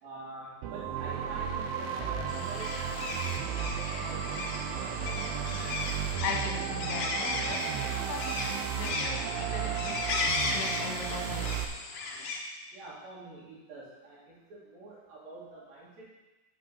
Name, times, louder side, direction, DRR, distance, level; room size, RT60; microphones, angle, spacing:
voice 1, 0.0-4.4 12.7-16.1, right 2 dB, 60° right, -6 dB, 3.4 m, -47 dB
sound 1, 0.6-11.7, right 8 dB, 85° right, 2.1 m, -34 dB
sound 2, 2.3-12.4, left 3 dB, 90° left, 1.4 m, -35 dB
voice 2, 5.7-11.7, left 5 dB, 70° left, 0 dB, 2.4 m, -39 dB
7.5 x 6.1 x 6.6 m, 1.1 s
omnidirectional pair, 4.8 m